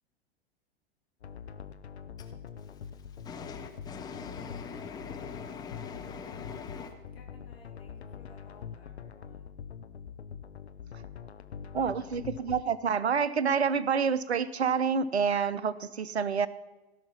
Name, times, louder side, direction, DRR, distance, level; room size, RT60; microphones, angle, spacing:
sound 1, 1.2-12.6, left 7 dB, 85° left, 0.7 m, -44 dB
voice 1, 2.7-6.9, left 6 dB, 10° left, 6 dB, 0.8 m, -43 dB
voice 2, 7.1-9.5, left 3 dB, 65° left, 0 dB, 3.3 m, -59 dB
voice 3, 11.7-16.5, right 6 dB, 85° right, 17 dB, 0.6 m, -28 dB
17.0 x 5.8 x 5.7 m, 1.1 s
figure-of-eight pair, 100°, 32 cm